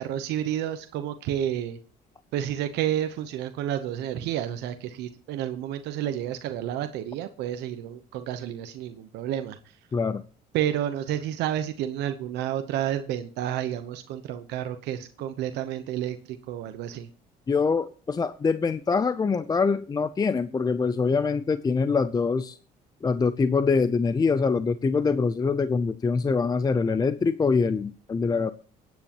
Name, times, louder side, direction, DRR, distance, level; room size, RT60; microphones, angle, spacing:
voice 1, 0.0-1.8 2.3-9.7 10.5-17.1, right 11 dB, 85° right, 8 dB, 1.0 m, -30 dB
voice 2, 17.5-22.6 23.0-28.5, left 4 dB, 25° left, 13 dB, 0.6 m, -24 dB
23.0 x 9.4 x 3.0 m, 0.41 s
cardioid pair, 110°, 17 cm